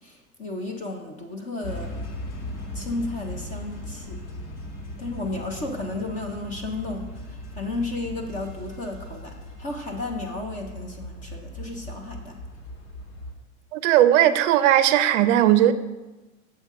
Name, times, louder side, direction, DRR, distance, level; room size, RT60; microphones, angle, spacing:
voice 1, 0.0-2.1 2.7-4.2 5.0-12.4, left 2 dB, 20° left, 4 dB, 0.5 m, -33 dB
sound 1, 1.6-13.3, left 1 dB, 80° left, 1.9 m, -38 dB
voice 2, 13.7-15.7, right 12 dB, 60° right, 12 dB, 0.5 m, -18 dB
7.4 x 6.7 x 3.6 m, 1.1 s
supercardioid pair, 150°, 43 cm